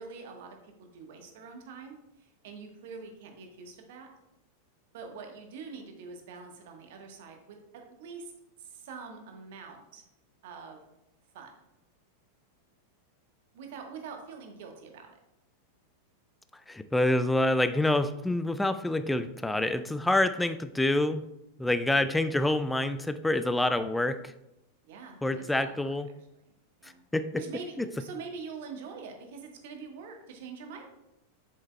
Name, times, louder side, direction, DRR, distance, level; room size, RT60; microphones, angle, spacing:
voice 1, 0.0-4.1 4.9-8.3 8.6-10.0 10.4-10.8 11.3-11.5 13.5-15.2 24.8-25.9 26.8-27.0 27.3-30.9, right 5 dB, 55° right, 3 dB, 1.2 m, -44 dB
voice 2, 16.7-21.3 21.6-24.3 25.2-26.1 26.8-27.3 27.8-27.9, left 1 dB, 5° left, 11 dB, 0.3 m, -27 dB
7.5 x 7.3 x 2.2 m, 0.88 s
figure-of-eight pair, 90°, 0 cm